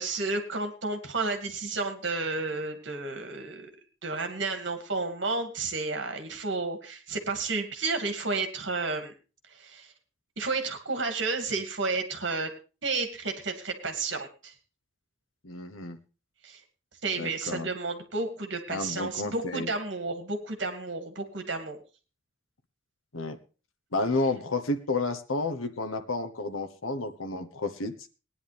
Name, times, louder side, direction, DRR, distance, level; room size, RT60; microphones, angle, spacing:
voice 1, 0.0-3.7 4.0-9.1 9.5-9.9 10.4-12.5 12.8-14.5 16.4-16.6 17.0-21.8, right 3 dB, 60° right, 5 dB, 2.4 m, -31 dB
voice 2, 15.4-16.0 17.2-17.7 18.7-19.7 23.1-23.4 23.9-27.9, left 3 dB, 90° left, 8 dB, 1.2 m, -31 dB
19.0 x 10.0 x 3.5 m, 0.34 s
head